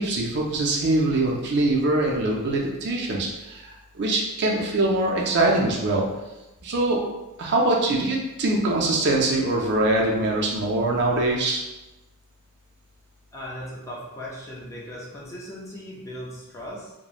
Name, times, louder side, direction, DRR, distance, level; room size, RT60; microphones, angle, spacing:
voice 1, 0.0-6.0 6.6-7.0 7.4-11.6, right 2 dB, 50° right, -1 dB, 0.4 m, -23 dB
voice 2, 13.3-16.9, equal, 15° left, -5 dB, 0.4 m, -38 dB
2.9 x 2.1 x 2.4 m, 1.0 s
head